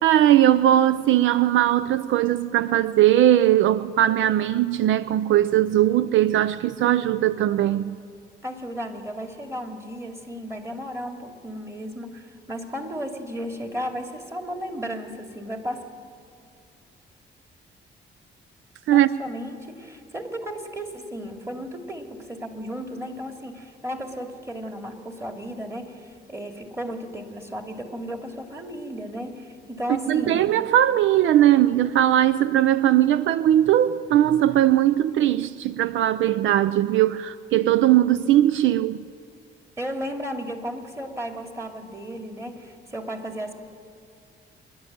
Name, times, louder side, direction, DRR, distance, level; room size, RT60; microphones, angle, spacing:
voice 1, 0.0-8.0 18.9-19.1 29.9-39.0, right 12 dB, 75° right, 0.5 m, -19 dB
voice 2, 8.4-15.8 18.9-30.5 39.8-43.5, equal, 15° right, 2.5 m, -34 dB
26.0 x 11.5 x 9.4 m
cardioid pair, 90°, 20 cm